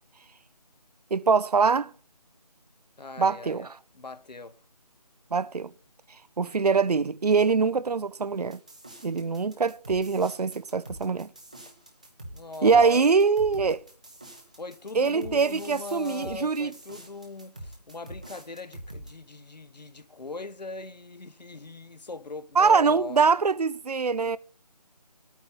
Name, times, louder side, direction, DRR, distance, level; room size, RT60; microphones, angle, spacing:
voice 1, 1.1-1.9 3.2-3.7 5.3-5.7 6.4-8.6 9.0-11.3 12.6-13.8 14.9-16.7 22.6-24.4, right 5 dB, 65° right, 0.6 m, -23 dB
voice 2, 3.0-3.7 3.9-4.6 12.3-13.0 14.6-23.2, left 3 dB, 75° left, 1.2 m, -40 dB
sound 1, 8.5-19.1, right 1 dB, 10° right, 0.7 m, -45 dB
9.4 x 9.0 x 8.3 m
figure-of-eight pair, 170°, 21 cm